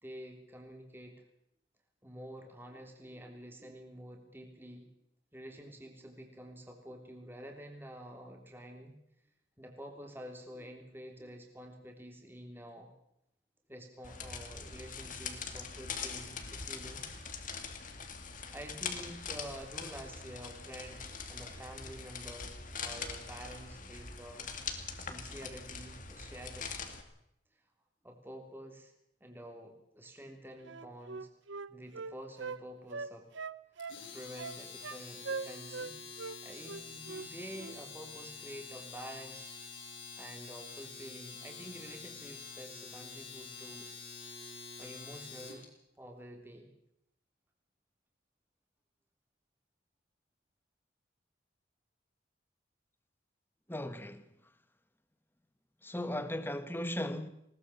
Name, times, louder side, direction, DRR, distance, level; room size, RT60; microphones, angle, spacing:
voice 1, 0.0-1.1 2.0-4.9 5.3-8.9 9.6-12.9 13.7-17.1 18.5-24.5 25.0-26.7 28.0-28.9 29.2-31.3 31.7-33.3 33.9-36.0 36.4-39.5 40.2-43.9 44.8-45.7 46.0-46.7, equal, 10° right, 3.3 m, -48 dB
sound 1, 14.0-27.0, left 5 dB, 45° left, 2.4 m, -43 dB
Wind instrument woodwind instrument, 30.6-32.6 32.9-34.0 34.4-35.0 35.2-35.9 36.2-36.4 36.7-37.3 37.6-37.8, right 4 dB, 80° right, 0.8 m, -41 dB
Domestic sounds home sounds, 33.8-45.6, left 5 dB, 80° left, 7.0 m, -47 dB
voice 2, 53.7-54.3 55.8-57.3, left 1 dB, 10° left, 1.4 m, -37 dB
20.5 x 19.0 x 7.2 m
head